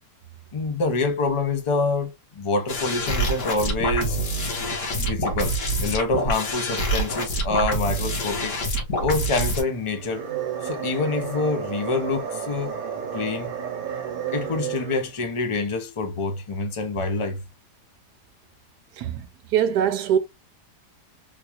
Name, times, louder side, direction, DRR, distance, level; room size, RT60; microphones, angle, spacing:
voice 1, 0.5-4.2 5.0-8.6 9.0-10.3 10.6-12.7 13.1-13.5 14.3-17.4, left 3 dB, 40° left, 0.4 m, -26 dB
sound 1, 2.7-9.6, right 1 dB, 85° left, 1.8 m, -26 dB
sound 2, 9.8-15.2, right 8 dB, 65° right, 1.3 m, -32 dB
voice 2, 19.0-19.3 19.5-20.2, right 9 dB, 85° right, 1.2 m, -22 dB
3.8 x 2.4 x 2.9 m
omnidirectional pair, 1.8 m